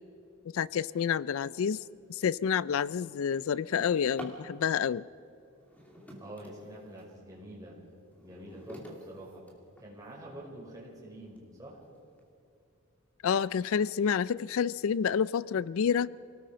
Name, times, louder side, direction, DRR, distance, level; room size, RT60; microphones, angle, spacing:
voice 1, 0.5-1.8 2.1-5.1 13.2-16.1, left 7 dB, 70° left, 20 dB, 0.4 m, -29 dB
Drawer open or close, 2.0-2.1 2.5-4.5 5.5-7.2 7.7-10.1 10.8-10.9 11.4-11.5 11.8-12.2, equal, 5° left, 2.6 m, -49 dB
voice 2, 6.2-7.8 8.2-9.4 9.8-11.8, right 1 dB, 15° right, -4 dB, 5.6 m, -46 dB
27.5 x 18.5 x 5.1 m, 2.7 s
head